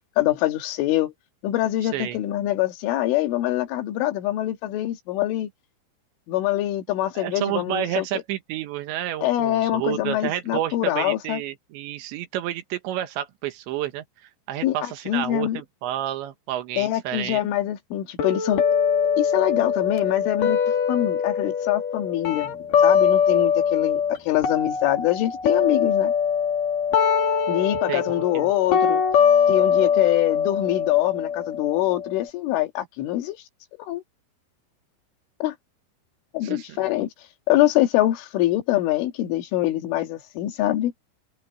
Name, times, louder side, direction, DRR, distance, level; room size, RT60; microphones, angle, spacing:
voice 1, 0.2-1.1 1.4-5.5 6.3-8.1 9.2-11.4 14.6-15.6 16.8-18.6 19.2-20.6 20.9-22.5 22.8-26.1 27.5-29.0 29.5-33.4 33.9-34.0 35.4-35.6 36.3-37.1 37.5-40.9, left 14 dB, 85° left, 4.3 m, -24 dB
voice 2, 7.1-17.4 27.9-28.5 36.4-36.8, right 12 dB, 75° right, 3.4 m, -30 dB
sound 1, 18.2-24.2 24.4-32.2, left 7 dB, 50° left, 3.4 m, -22 dB
open air
omnidirectional pair, 5.4 m